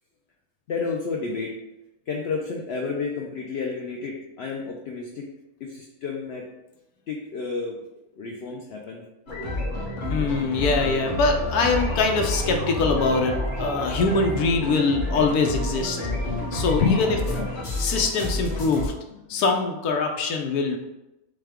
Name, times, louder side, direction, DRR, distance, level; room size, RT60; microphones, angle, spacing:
voice 1, 0.7-1.6 2.1-5.3 5.6-6.5 7.1-7.8 8.2-9.0 16.8-17.0 17.4-17.5, left 5 dB, 65° left, 0 dB, 0.6 m, -30 dB
sound 1, 9.3-18.9, left 1 dB, 35° left, 1.1 m, -29 dB
voice 2, 10.1-16.0 16.5-17.2 17.8-18.9 19.3-20.8, left 4 dB, 85° left, 3 dB, 1.1 m, -23 dB
6.5 x 2.2 x 3.5 m, 0.95 s
omnidirectional pair, 1.6 m